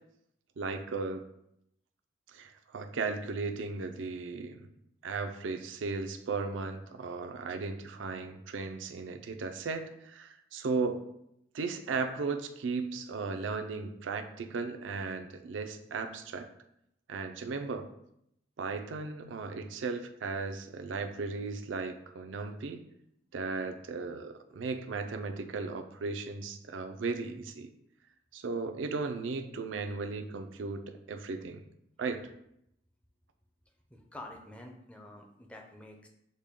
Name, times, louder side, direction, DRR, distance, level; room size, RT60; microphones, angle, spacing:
voice 1, 0.6-1.2 2.3-4.7 5.0-11.0 11.5-16.5 17.1-17.9 18.6-22.8 23.3-27.7 28.3-31.6 32.0-32.3, right 4 dB, 90° right, 7 dB, 0.4 m, -36 dB
voice 2, 33.9-36.1, left 1 dB, 5° left, 1 dB, 0.5 m, -48 dB
6.4 x 2.2 x 3.6 m, 0.76 s
head